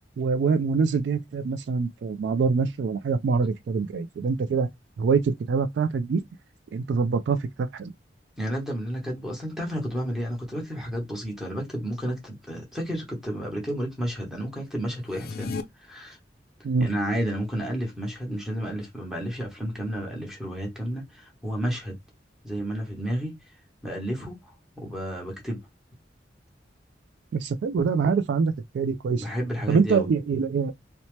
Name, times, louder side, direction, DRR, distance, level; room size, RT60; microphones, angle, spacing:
voice 1, 0.2-4.7 5.0-6.2 6.7-7.9 16.6-16.9 27.3-29.3 29.7-30.7, right 5 dB, 70° right, 0.3 m, -24 dB
voice 2, 8.4-15.5 15.8-16.2 16.8-22.0 22.4-23.4 23.8-25.6 29.2-30.1, equal, 5° right, 1.0 m, -31 dB
sound 1, 15.0-15.6, left 4 dB, 55° left, 0.4 m, -33 dB
2.8 x 2.1 x 3.0 m
head